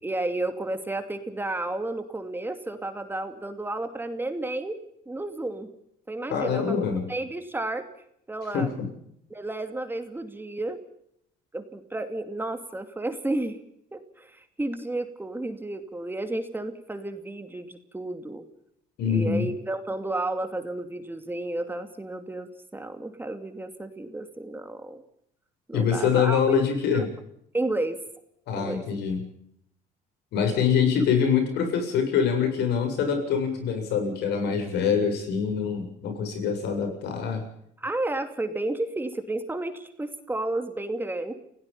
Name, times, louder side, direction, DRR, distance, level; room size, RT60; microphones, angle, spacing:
voice 1, 0.0-5.7 6.1-6.8 7.1-7.9 8.3-8.7 9.3-10.8 11.5-13.6 13.9-18.4 19.1-25.0 25.7-26.4 26.9-27.0 27.5-28.0 28.5-28.9 30.7-30.8 37.8-41.3, right 2 dB, 10° right, 8 dB, 2.6 m, -32 dB
voice 2, 6.3-7.0 8.5-8.9 19.0-19.5 25.7-27.1 28.5-29.2 30.3-37.4, left 6 dB, 80° left, 6 dB, 7.5 m, -24 dB
30.0 x 17.5 x 5.6 m, 0.73 s
cardioid pair, 110°, 17 cm